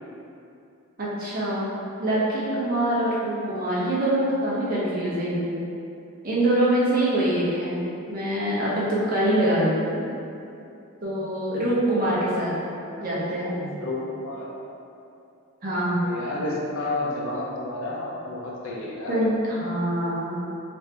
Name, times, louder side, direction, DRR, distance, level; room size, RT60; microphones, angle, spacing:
voice 1, 1.0-1.7 2.0-5.5 6.2-7.8 8.1-10.0 11.0-12.6 13.0-13.7 15.6-16.0 19.1-20.3, right 1 dB, 40° right, -7 dB, 0.7 m, -24 dB
voice 2, 13.8-14.5 16.0-19.2, left 2 dB, 60° left, -4 dB, 0.5 m, -30 dB
2.8 x 2.6 x 3.2 m, 2.6 s
head